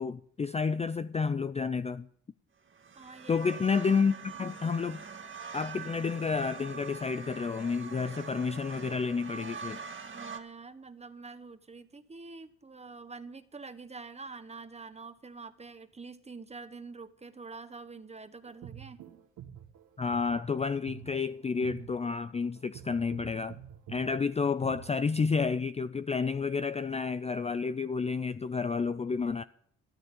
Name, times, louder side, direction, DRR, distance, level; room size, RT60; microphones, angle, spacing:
voice 1, 0.0-2.1 3.3-5.0 5.5-9.8 20.0-23.6 23.9-29.4, left 5 dB, 20° left, 0.4 m, -30 dB
sound 1, 2.7-10.4, right 5 dB, 40° right, 1.9 m, -44 dB
voice 2, 2.9-3.5 10.0-19.0, right 4 dB, 20° right, 1.2 m, -46 dB
sound 2, 18.4-25.4, right 11 dB, 85° right, 1.7 m, -48 dB
13.5 x 13.5 x 5.5 m
cardioid pair, 90°, 30 cm